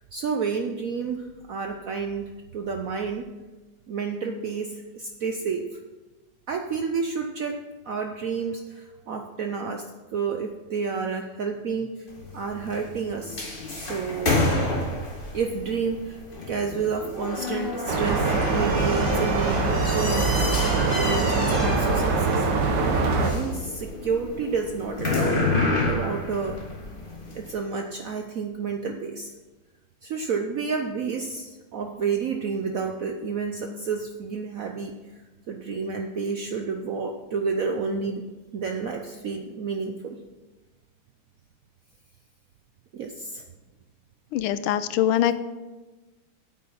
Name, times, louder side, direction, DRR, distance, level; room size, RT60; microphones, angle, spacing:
voice 1, 0.1-3.3 3.9-5.6 6.5-7.6 7.9-9.8 10.1-12.1 12.3-14.3 15.3-20.5 20.9-22.5 22.8-26.6 27.3-29.3 30.0-35.2 35.5-38.2 38.5-40.2 42.9-43.4, right 5 dB, 75° right, 5 dB, 0.7 m, -30 dB
sound 1, 12.1-27.5, left 2 dB, 25° left, 1.9 m, -29 dB
sound 2, 17.9-23.3, right 3 dB, 60° right, 1.7 m, -23 dB
voice 2, 44.3-45.3, left 11 dB, 85° left, 13 dB, 1.5 m, -23 dB
8.5 x 8.5 x 5.8 m, 1.2 s
omnidirectional pair, 2.3 m